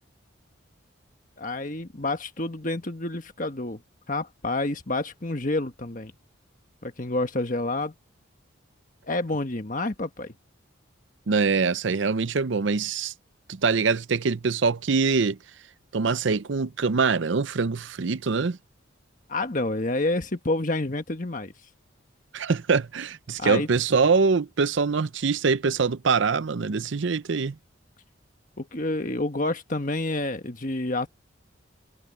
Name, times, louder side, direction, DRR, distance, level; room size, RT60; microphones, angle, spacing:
voice 1, 1.4-3.8 4.1-6.1 6.8-7.9 9.0-10.3 19.3-21.5 23.4-23.7 28.6-31.1, left 2 dB, 40° left, 1.4 m, -28 dB
voice 2, 11.3-13.1 13.5-15.4 15.9-18.6 22.3-27.6, right 5 dB, 65° right, 0.6 m, -24 dB
head